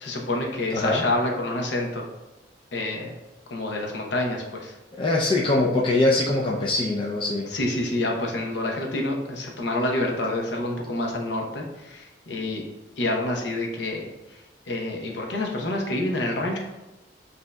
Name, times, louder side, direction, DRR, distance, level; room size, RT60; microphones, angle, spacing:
voice 1, 0.0-2.1 2.7-3.1 3.5-4.7 7.5-12.6 13.0-14.1 14.7-16.6, left 1 dB, 75° left, 0 dB, 0.8 m, -27 dB
voice 2, 0.7-1.1 5.0-7.5, left 2 dB, 30° left, -2 dB, 0.4 m, -22 dB
7.5 x 2.7 x 2.2 m, 1.0 s
head